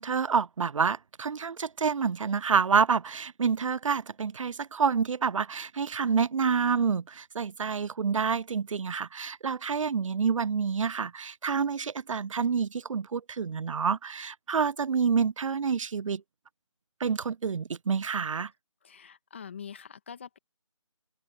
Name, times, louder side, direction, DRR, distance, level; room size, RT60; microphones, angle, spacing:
voice 1, 0.0-16.2 17.0-18.5, right 6 dB, 80° right, 0.5 m, -28 dB
voice 2, 18.8-20.4, left 7 dB, 25° left, 1.9 m, -44 dB
hypercardioid pair, 180°, 16 cm